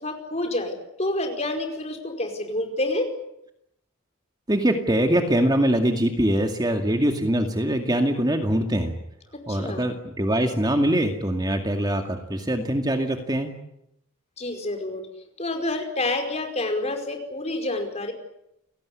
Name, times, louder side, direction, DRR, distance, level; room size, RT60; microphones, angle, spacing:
voice 1, 0.0-3.1 9.3-9.8 14.4-15.0 15.4-18.1, left 2 dB, 30° left, 5 dB, 5.1 m, -28 dB
voice 2, 4.5-8.9 9.5-13.5, right 1 dB, 20° right, 5 dB, 2.2 m, -23 dB
29.5 x 18.0 x 9.8 m, 0.80 s
head